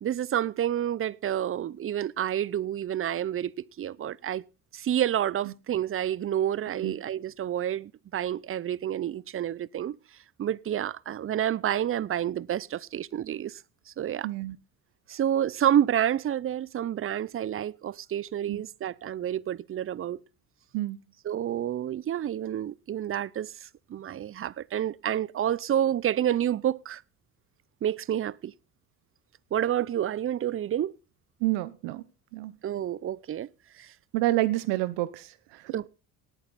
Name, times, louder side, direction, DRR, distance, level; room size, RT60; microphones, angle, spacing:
voice 1, 0.0-4.4 4.7-10.0 10.4-13.6 13.9-14.3 15.1-20.2 21.2-27.0 27.8-28.5 29.5-30.9 32.6-33.5 33.8-33.9 35.7-35.9, right 10 dB, 30° right, 0.6 m, -29 dB
voice 2, 14.2-14.6 18.5-18.6 20.7-21.0 31.4-32.0 32.3-32.5 34.1-35.3 35.6-35.7, right 17 dB, 70° right, 1.0 m, -28 dB
18.0 x 8.9 x 4.1 m
hypercardioid pair, 65°, 44 cm